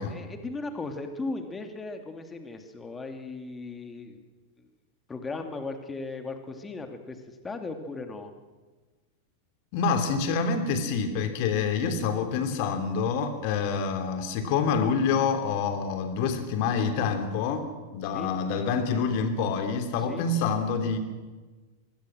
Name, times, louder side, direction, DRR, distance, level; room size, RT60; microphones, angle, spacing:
voice 1, 0.0-4.2 4.6-4.7 5.1-8.3 18.1-18.3 20.0-20.2, left 3 dB, 15° left, 6 dB, 2.7 m, -37 dB
voice 2, 9.7-21.0, left 5 dB, 45° left, 7 dB, 3.2 m, -27 dB
25.5 x 20.5 x 6.4 m, 1.3 s
figure-of-eight pair, 90°, 0 cm